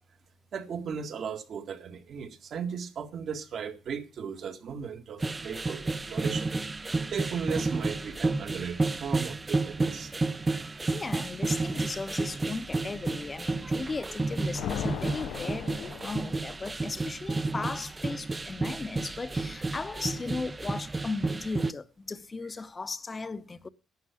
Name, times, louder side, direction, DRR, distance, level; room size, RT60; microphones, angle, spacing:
voice 1, 0.5-6.5 7.1-10.1, right 6 dB, 60° right, 1.9 m, -36 dB
sound 1, 5.2-21.7, right 3 dB, 25° right, 0.6 m, -31 dB
voice 2, 10.9-23.7, left 3 dB, 30° left, 0.9 m, -36 dB
sound 2, 14.1-16.7, left 11 dB, 80° left, 0.5 m, -38 dB
11.5 x 9.3 x 6.1 m
cardioid pair, 90°, 0 cm